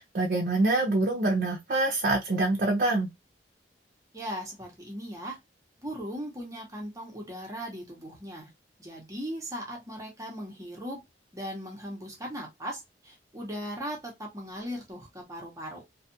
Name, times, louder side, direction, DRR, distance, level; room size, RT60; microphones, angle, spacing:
voice 1, 0.0-3.1, right 2 dB, 50° right, 0.5 m, -25 dB
voice 2, 4.1-5.4 5.8-8.5 8.8-11.0 11.3-15.8, equal, 20° right, 0.8 m, -38 dB
2.6 x 2.3 x 2.7 m
head